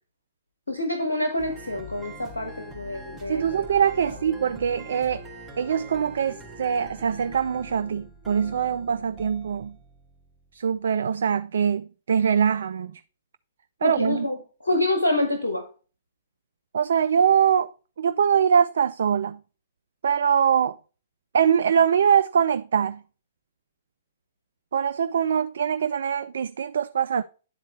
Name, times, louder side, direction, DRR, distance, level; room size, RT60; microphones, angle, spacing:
voice 1, 0.7-3.7 4.0-4.1 13.8-14.4 14.6-15.6, left 1 dB, 85° left, 1.2 m, -27 dB
sound 1, 1.4-10.5, equal, 5° left, 2.6 m, -43 dB
voice 2, 3.3-5.2 5.6-9.8 10.5-13.0 13.8-14.3 16.7-17.7 18.0-19.4 20.0-20.8 21.3-23.0 24.7-27.2, right 7 dB, 65° right, 0.3 m, -23 dB
10.0 x 4.2 x 4.4 m
figure-of-eight pair, 115°, 0 cm